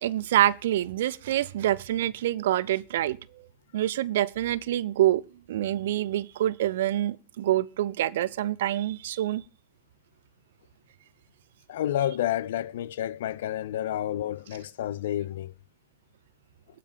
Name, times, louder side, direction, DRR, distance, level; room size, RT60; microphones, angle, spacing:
voice 1, 0.0-3.2 3.7-5.2 5.5-9.4, right 13 dB, 55° right, 0.6 m, -26 dB
voice 2, 11.7-15.5, left 12 dB, 60° left, 0.6 m, -30 dB
12.0 x 5.1 x 8.4 m
figure-of-eight pair, 90°, 0 cm